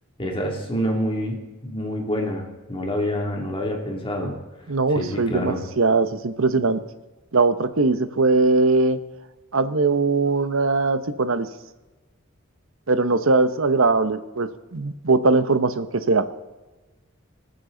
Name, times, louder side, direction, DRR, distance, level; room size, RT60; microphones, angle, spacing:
voice 1, 0.2-4.4 4.9-5.6, equal, 25° left, 1 dB, 2.7 m, -27 dB
voice 2, 4.7-6.8 7.3-9.0 9.5-11.5 12.9-16.3, right 3 dB, 70° right, 11 dB, 1.0 m, -20 dB
27.0 x 9.5 x 3.9 m, 1.2 s
head